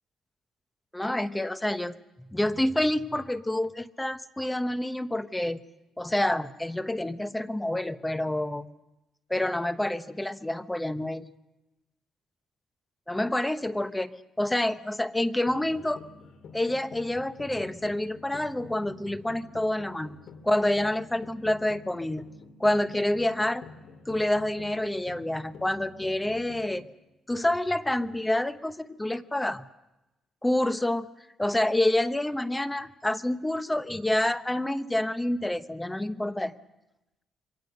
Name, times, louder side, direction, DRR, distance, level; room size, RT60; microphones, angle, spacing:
voice 1, 0.9-5.6 6.0-8.7 9.3-11.3 13.1-14.1 14.4-16.0 16.5-20.2 20.4-22.2 22.6-23.6 24.1-26.8 27.3-29.6 30.4-31.1 31.4-36.5, left 1 dB, 10° left, 12 dB, 1.0 m, -28 dB
sound 1, 15.4-26.9, left 4 dB, 65° left, 2.5 m, -48 dB
27.5 x 23.5 x 6.7 m, 1.0 s
cardioid pair, 110°, 0 cm